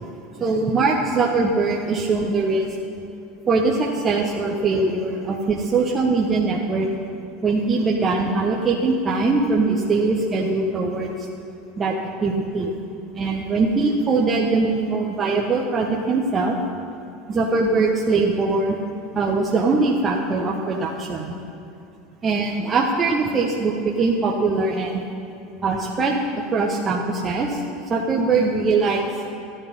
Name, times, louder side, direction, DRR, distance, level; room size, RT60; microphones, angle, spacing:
voice 1, 0.4-2.7 3.5-6.9 7.4-11.1 11.8-11.9 12.2-12.7 13.1-16.6 17.3-18.8 19.1-21.3 22.2-25.0 25.6-26.2 26.5-27.6 27.9-29.1, right 3 dB, 30° right, -1 dB, 1.1 m, -21 dB
12.5 x 9.9 x 5.4 m, 2.7 s
figure-of-eight pair, 75°, 0 cm